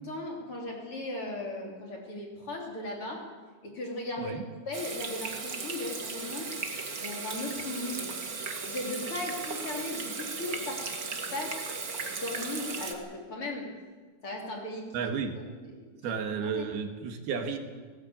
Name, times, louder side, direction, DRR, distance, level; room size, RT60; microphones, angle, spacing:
voice 1, 0.0-3.2 3.6-4.4 4.7-6.5 6.9-8.1 8.7-11.6 12.2-13.7 14.2-15.1 15.7-16.2 16.4-16.7, left 2 dB, 35° left, 0 dB, 3.9 m, -37 dB
Water tap faucet / Sink (filling or washing), 4.7-12.9, right 4 dB, 40° right, 1.4 m, -36 dB
voice 2, 14.9-15.4 16.0-17.6, right 6 dB, 80° right, 5 dB, 3.7 m, -32 dB
18.5 x 18.0 x 8.8 m, 1.5 s
omnidirectional pair, 4.4 m